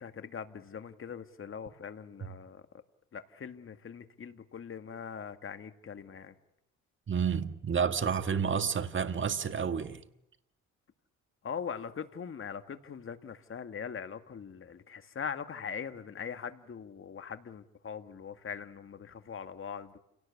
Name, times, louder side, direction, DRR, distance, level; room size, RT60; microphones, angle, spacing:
voice 1, 0.0-2.6 3.1-6.3 11.4-20.0, left 7 dB, 45° left, 2.0 m, -41 dB
voice 2, 7.1-10.0, right 6 dB, 40° right, 1.8 m, -30 dB
29.5 x 18.0 x 8.5 m
cardioid pair, 90°, 30 cm